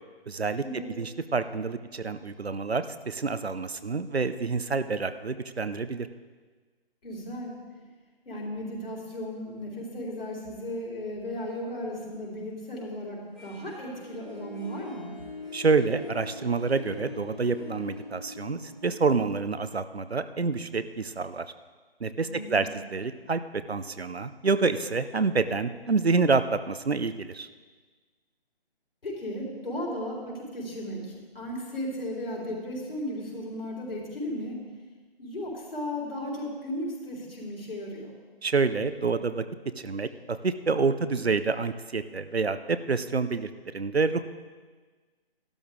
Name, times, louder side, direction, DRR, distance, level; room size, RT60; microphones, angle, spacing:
voice 1, 0.3-0.6 1.0-6.1 15.5-21.5 22.0-27.5 38.4-39.4 39.8-44.2, right 4 dB, 80° right, 12 dB, 0.7 m, -27 dB
voice 2, 7.0-7.6 8.2-15.1 22.2-22.8 29.0-34.6 35.2-38.1, left 1 dB, 60° left, -3 dB, 4.3 m, -35 dB
Harp, 13.4-20.2, left 3 dB, ahead, 1.7 m, -43 dB
14.0 x 12.5 x 3.6 m, 1.4 s
figure-of-eight pair, 150°, 31 cm